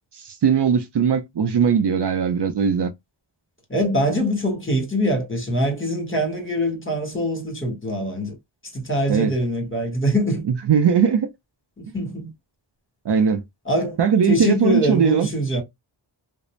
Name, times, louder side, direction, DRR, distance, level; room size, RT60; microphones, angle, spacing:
voice 1, 0.1-2.9 9.1-9.3 10.5-11.3 13.1-13.4 14.0-15.3, right 7 dB, 55° right, 0.5 m, -19 dB
voice 2, 3.7-8.3 8.7-10.4 11.8-12.3 13.7-14.0 14.3-15.6, equal, 25° left, 1.3 m, -23 dB
2.4 x 2.0 x 3.0 m
wide cardioid pair, 60°, 49 cm